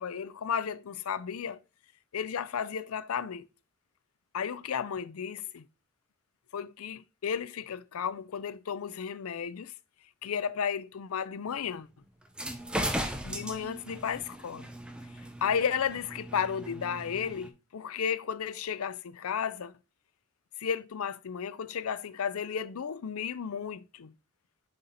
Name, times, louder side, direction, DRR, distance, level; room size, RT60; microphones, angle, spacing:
voice 1, 0.0-1.6 2.1-3.5 4.3-5.6 6.5-9.7 10.2-11.9 13.2-14.7 15.4-19.7 20.6-24.1, left 7 dB, 75° left, 0.5 m, -33 dB
sound 1, 12.2-17.5, right 1 dB, 5° right, 0.7 m, -37 dB
6.9 x 3.9 x 4.2 m
head